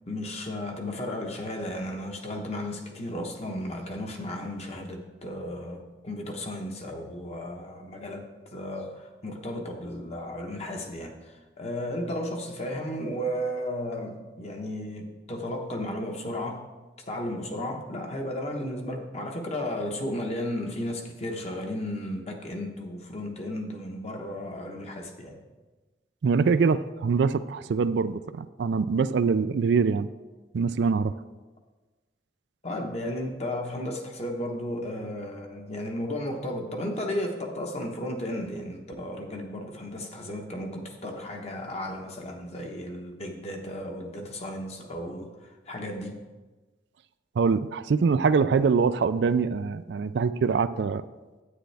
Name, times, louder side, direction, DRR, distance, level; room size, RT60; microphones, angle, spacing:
voice 1, 0.1-16.7 17.1-25.4 32.6-46.2, left 1 dB, 35° left, 2 dB, 1.1 m, -34 dB
voice 2, 26.2-30.1 30.5-31.1 47.4-51.0, right 5 dB, 70° right, 13 dB, 0.4 m, -24 dB
9.8 x 9.0 x 3.4 m, 1.2 s
head